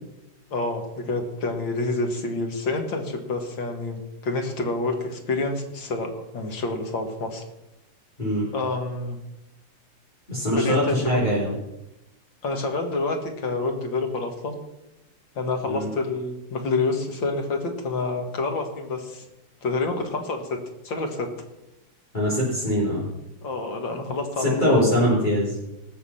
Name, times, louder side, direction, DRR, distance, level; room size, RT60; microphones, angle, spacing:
voice 1, 0.5-7.4 8.5-9.2 10.5-11.0 12.4-14.6 15.4-19.2 19.6-20.5 20.8-21.3 23.4-25.1, left 3 dB, 90° left, 3 dB, 2.6 m, -28 dB
voice 2, 10.3-11.5 15.7-15.9 22.1-23.0 24.4-25.6, equal, 25° left, -8 dB, 3.9 m, -22 dB
19.0 x 6.9 x 5.7 m, 0.92 s
omnidirectional pair, 2.0 m